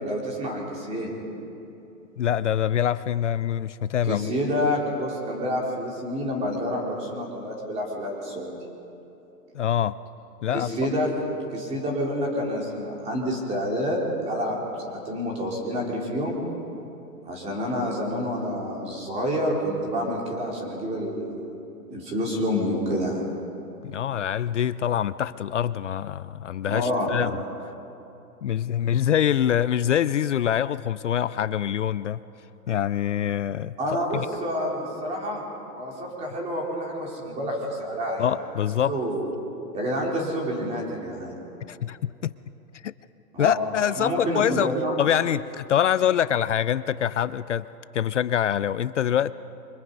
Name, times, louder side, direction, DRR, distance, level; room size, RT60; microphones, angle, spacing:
voice 1, 0.0-1.1 4.0-8.6 10.5-11.1 11.5-16.4 17.2-21.5 21.9-23.2 26.6-27.2 33.8-35.4 35.7-38.3 38.8-39.3 39.7-41.3 43.3-43.6 44.0-44.9, equal, 15° right, -2 dB, 3.3 m, -28 dB
voice 2, 2.2-4.3 9.5-10.0 10.4-10.7 23.8-27.3 28.4-32.2 32.7-33.7 34.1-34.3 38.2-38.9 41.6-42.3 42.8-42.9 43.4-44.7 45.0-47.6 47.9-49.3, left 10 dB, 50° left, 16 dB, 0.5 m, -25 dB
28.5 x 25.0 x 5.3 m, 2.9 s
hypercardioid pair, 165°, 47 cm